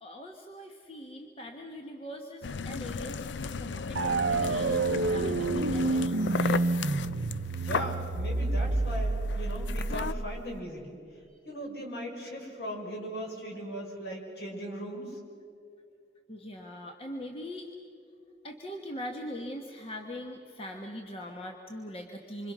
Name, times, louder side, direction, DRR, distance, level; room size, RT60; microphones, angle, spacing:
voice 1, 0.0-6.6 16.3-17.7 18.4-22.5, equal, 30° left, 2 dB, 1.4 m, -41 dB
sound 1, 2.4-10.1, left 5 dB, 80° left, 0.5 m, -36 dB
sound 2, 4.0-10.6, right 3 dB, 85° right, 0.7 m, -29 dB
voice 2, 7.6-11.0 11.4-15.2, equal, 60° left, 0 dB, 5.9 m, -38 dB
26.5 x 26.0 x 6.2 m, 2.6 s
head